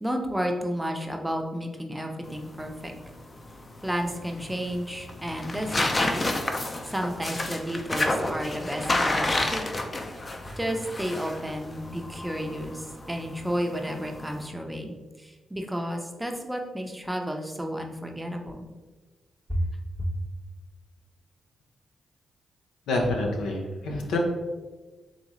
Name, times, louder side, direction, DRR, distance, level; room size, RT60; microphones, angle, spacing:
voice 1, 0.0-2.9 3.8-6.3 6.9-9.6 10.6-18.6 19.5-19.7 20.0-20.1, equal, 5° right, 3 dB, 0.6 m, -32 dB
sound 1, 2.2-14.5, left 2 dB, 35° left, 0.5 m, -31 dB
voice 2, 22.9-24.2, left 2 dB, 90° left, 1 dB, 0.7 m, -27 dB
3.9 x 3.4 x 3.1 m, 1.3 s
cardioid pair, 60°, 0 cm